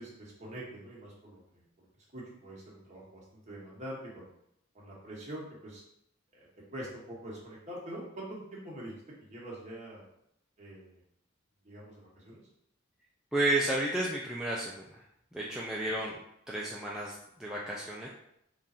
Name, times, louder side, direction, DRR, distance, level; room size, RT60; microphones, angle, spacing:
voice 1, 0.0-4.3 4.7-5.8 6.3-8.9 9.2-10.0 10.6-11.0 11.6-12.4, right 1 dB, 35° right, -5 dB, 1.2 m, -45 dB
voice 2, 13.3-15.0 15.3-16.2 16.5-18.1, right 1 dB, 5° right, -5 dB, 0.4 m, -32 dB
3.7 x 2.5 x 4.2 m, 0.76 s
head